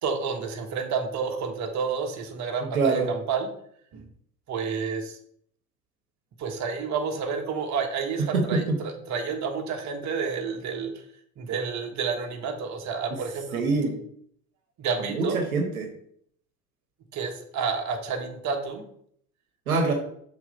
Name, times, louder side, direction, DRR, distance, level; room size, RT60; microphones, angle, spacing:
voice 1, 0.0-3.5 3.9-4.1 4.5-5.2 6.4-11.0 11.4-13.6 14.8-15.4 17.1-18.8, right 5 dB, 40° right, 4 dB, 1.3 m, -30 dB
voice 2, 2.6-3.1 8.2-8.8 13.5-14.0 15.0-15.9 19.7-19.9, right 3 dB, 85° right, 4 dB, 1.1 m, -25 dB
6.1 x 3.9 x 5.4 m, 0.66 s
figure-of-eight pair, 65°, 42 cm